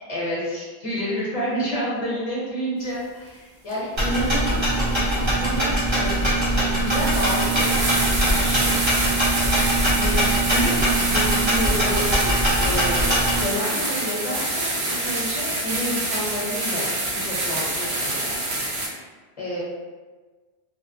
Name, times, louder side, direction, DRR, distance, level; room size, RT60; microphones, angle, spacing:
voice 1, 0.1-9.1 9.8-16.9 17.1-18.4 18.6-19.1 19.4-19.6, equal, 40° left, -7 dB, 0.8 m, -30 dB
sound 1, 3.7-3.8 5.6-5.7 6.3-6.4 6.8-18.9, right 2 dB, 80° right, 0.9 m, -26 dB
sound 2, 4.0-13.4, right 1 dB, 30° right, 0.8 m, -22 dB
2.8 x 2.0 x 2.6 m, 1.3 s
omnidirectional pair, 1.0 m